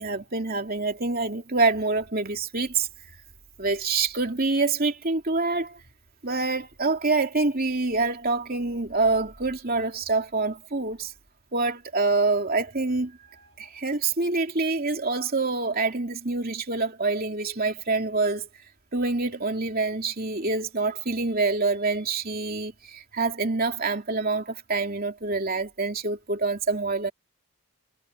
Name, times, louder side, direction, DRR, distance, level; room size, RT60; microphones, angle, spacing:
voice 1, 0.0-2.9 3.6-5.8 6.2-11.1 11.5-18.5 18.9-27.1, right 3 dB, 40° right, 3.0 m, -26 dB
head